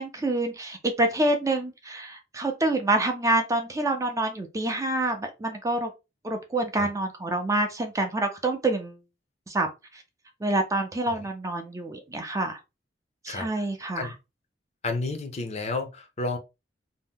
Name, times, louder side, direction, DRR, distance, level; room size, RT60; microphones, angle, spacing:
voice 1, 0.0-5.9 6.2-9.0 9.5-9.7 9.9-10.0 10.4-12.6 13.2-14.1, right 2 dB, 20° right, 0.4 m, -27 dB
voice 2, 13.3-13.6 14.0-14.1 14.8-16.4, left 3 dB, 35° left, 0.5 m, -31 dB
2.7 x 2.1 x 3.5 m
head